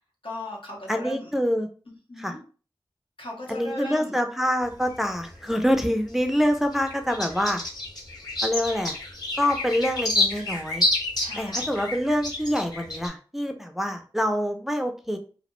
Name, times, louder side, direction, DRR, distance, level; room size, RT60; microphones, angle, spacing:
voice 1, 0.2-1.3 1.9-2.4 3.2-4.2 11.2-11.7, left 1 dB, 85° left, -2 dB, 0.8 m, -37 dB
voice 2, 0.9-1.7 2.2-2.3 3.5-7.6 8.4-9.0 9.4-10.9 11.4-15.2, equal, 5° right, 5 dB, 0.3 m, -26 dB
sound 1, 4.6-6.1 6.5-13.1, left 1 dB, 50° left, 0.9 m, -29 dB
2.3 x 2.0 x 2.9 m, 0.38 s
wide cardioid pair, 55°, 9 cm